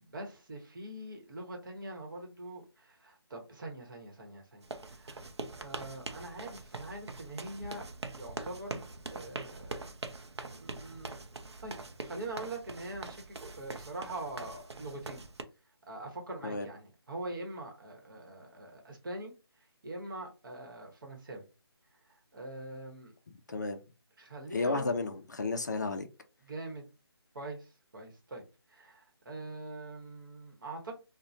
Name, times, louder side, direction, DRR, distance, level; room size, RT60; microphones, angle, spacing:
voice 1, 0.0-5.2 5.6-7.8 8.1-8.8 9.1-9.9 10.4-11.1 11.6-11.8 12.0-15.2 15.9-19.3 19.8-21.4 22.3-23.1 23.5-23.6 24.2-25.0 26.4-26.9 27.3-28.4 28.7-30.9, right 2 dB, 50° right, 1.0 m, -43 dB
sound 1, 4.6-15.4, right 3 dB, 80° right, 0.5 m, -43 dB
voice 2, 23.5-23.8 24.5-26.1, left 3 dB, 45° left, 0.3 m, -32 dB
2.9 x 2.1 x 2.5 m
figure-of-eight pair, 160°, 14 cm